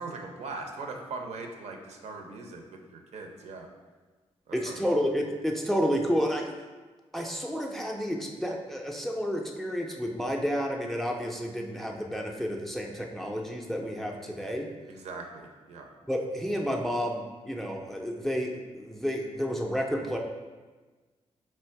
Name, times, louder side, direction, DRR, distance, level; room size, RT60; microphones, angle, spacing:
voice 1, 0.0-3.7 4.5-4.8 14.9-15.9, right 3 dB, 80° right, 2 dB, 0.6 m, -40 dB
voice 2, 4.5-6.5 7.1-14.7 16.1-20.2, equal, ahead, 1 dB, 0.3 m, -30 dB
3.3 x 3.1 x 4.5 m, 1.3 s
wide cardioid pair, 170°, 11 cm